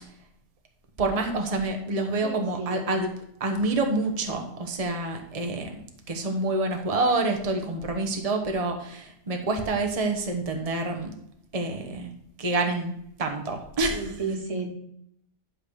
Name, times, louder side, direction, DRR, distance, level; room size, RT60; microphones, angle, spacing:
voice 1, 1.0-3.1 3.4-11.1 11.5-12.1 12.4-14.2, right 2 dB, 30° right, 4 dB, 1.1 m, -27 dB
voice 2, 2.2-2.8 13.9-14.7, right 3 dB, 75° right, 2 dB, 1.8 m, -32 dB
11.0 x 3.9 x 6.4 m, 0.73 s
omnidirectional pair, 1.3 m